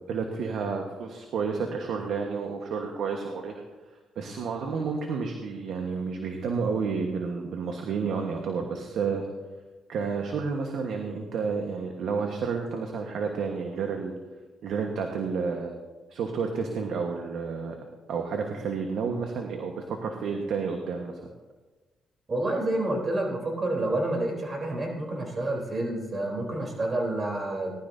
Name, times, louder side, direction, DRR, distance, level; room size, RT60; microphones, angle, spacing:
voice 1, 0.1-3.6 4.2-9.2 9.9-14.2 14.6-15.7 16.1-17.7 18.1-21.2, right 5 dB, 75° right, 3 dB, 1.3 m, -30 dB
voice 2, 22.3-27.7, right 1 dB, 35° right, 0 dB, 3.5 m, -29 dB
19.0 x 12.0 x 2.7 m, 1.3 s
cardioid pair, 90°, 0 cm